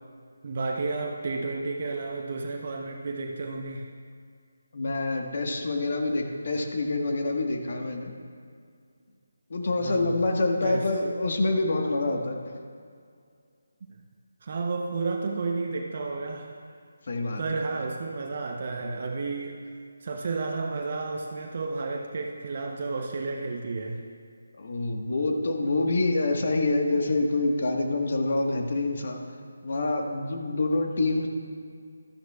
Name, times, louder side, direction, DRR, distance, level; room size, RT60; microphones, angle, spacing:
voice 1, 0.4-3.9 9.8-10.3 10.6-10.9 14.4-16.6 17.4-19.7 20.0-24.0, right 3 dB, 45° right, 2 dB, 0.8 m, -32 dB
voice 2, 4.7-8.1 9.5-12.4 17.1-17.4 24.6-29.2 29.6-31.3, left 2 dB, 55° left, 2 dB, 1.4 m, -26 dB
13.0 x 12.0 x 2.4 m, 2.2 s
figure-of-eight pair, 155°, 0 cm